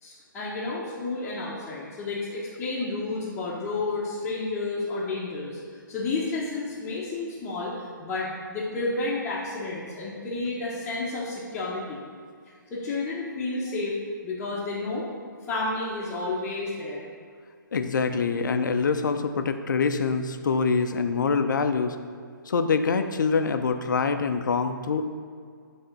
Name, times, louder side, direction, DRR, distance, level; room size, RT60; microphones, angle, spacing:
voice 1, 0.0-5.6 5.9-12.0 12.7-14.0 14.2-15.1 15.5-17.0, left 3 dB, 20° left, -9 dB, 0.9 m, -31 dB
voice 2, 17.7-22.0 22.5-25.0, left 5 dB, 65° left, 8 dB, 0.5 m, -25 dB
8.6 x 3.5 x 4.0 m, 2.1 s
figure-of-eight pair, 140°, 11 cm